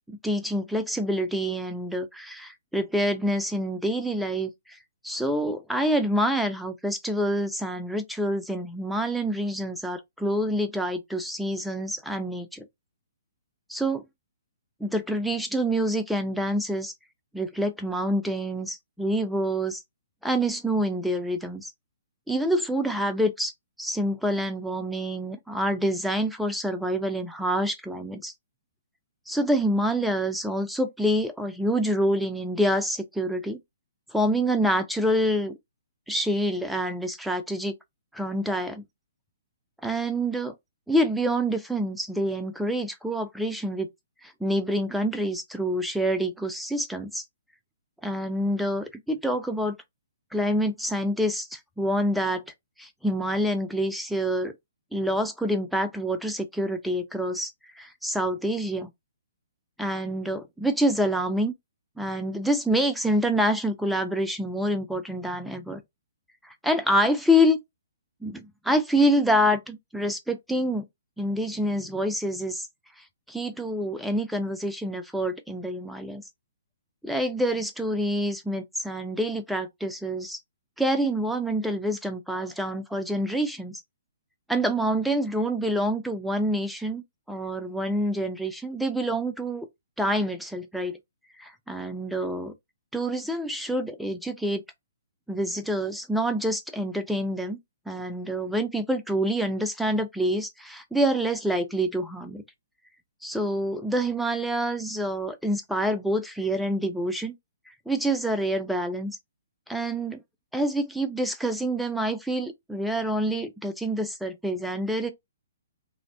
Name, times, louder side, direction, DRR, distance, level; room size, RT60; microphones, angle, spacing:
voice 1, 0.1-4.8 5.0-12.7 13.7-14.0 14.8-16.9 17.3-19.8 20.2-21.7 22.3-23.5 23.8-28.3 29.3-33.6 34.1-35.6 36.1-37.7 38.1-38.8 39.8-40.5 40.9-43.9 44.2-47.2 48.0-49.8 50.3-52.4 52.8-54.5 54.9-58.9 59.8-61.5 62.0-65.8 66.4-67.6 68.2-70.9 71.2-72.7 73.3-76.2 77.0-80.4 80.8-83.8 84.5-89.7 90.0-91.0 91.4-92.5 92.9-94.6 95.3-97.6 97.9-102.4 103.2-107.3 107.9-109.2 109.7-110.2 110.5-115.1, equal, ahead, 0.4 m, -27 dB
2.5 x 2.1 x 2.5 m
figure-of-eight pair, 125°, 0 cm